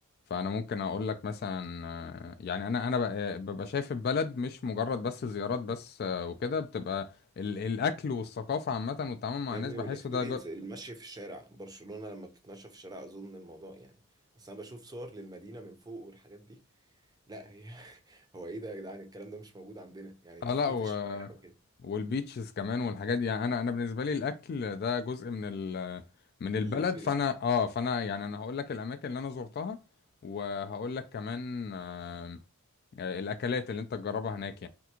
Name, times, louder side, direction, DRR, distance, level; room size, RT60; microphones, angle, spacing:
voice 1, 0.3-10.4 20.4-21.3 21.8-26.0 26.4-29.8 30.2-32.4 33.0-34.7, left 5 dB, 45° left, 0.3 m, -33 dB
voice 2, 9.5-14.0 14.4-16.6 17.3-21.5 26.6-27.1, right 2 dB, 15° right, 0.5 m, -44 dB
3.4 x 2.4 x 2.8 m
head